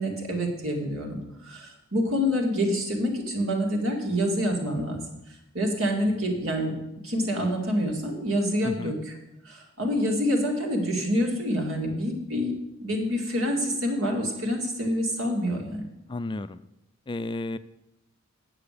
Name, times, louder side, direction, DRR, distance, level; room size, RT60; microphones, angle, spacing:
voice 1, 0.0-5.0 5.5-6.7 7.0-9.1 9.4-15.8, equal, 70° right, 1 dB, 2.3 m, -27 dB
voice 2, 8.6-8.9 16.1-16.6 17.1-17.6, left 2 dB, 20° left, 12 dB, 0.3 m, -32 dB
9.0 x 7.7 x 6.7 m, 0.89 s
head